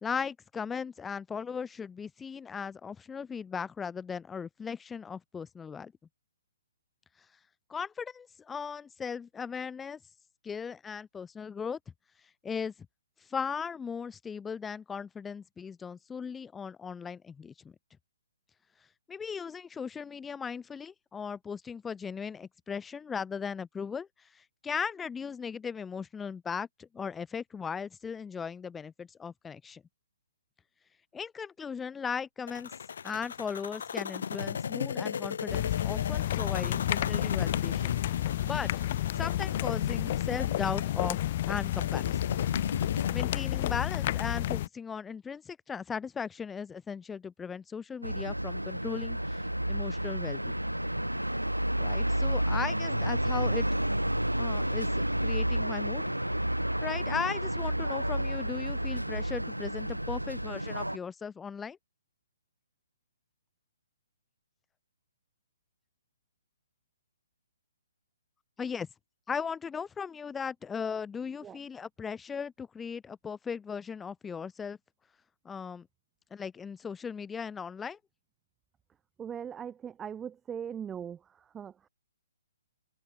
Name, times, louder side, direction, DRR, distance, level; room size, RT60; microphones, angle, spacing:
voice 1, 0.0-5.9 7.7-10.0 10.4-11.8 12.4-12.7 13.3-17.7 19.1-24.1 24.6-29.8 31.1-32.7 33.0-38.0 38.4-38.7 39.2-41.2 41.5-42.3 43.1-49.2 49.7-50.4 51.8-53.7 54.4-54.9 55.2-56.0 56.8-61.8 68.6-68.9 69.3-74.8 75.5-75.9 76.3-78.0, left 6 dB, 10° left, 1.8 m, -37 dB
sound 1, 32.5-43.1, left 7 dB, 55° left, 3.4 m, -36 dB
sound 2, 35.5-44.7, left 13 dB, 40° left, 1.0 m, -31 dB
sound 3, 48.0-61.0, right 1 dB, 90° right, 0.4 m, -30 dB
voice 2, 79.2-81.9, right 8 dB, 15° right, 0.9 m, -40 dB
figure-of-eight pair, 125°, 0 cm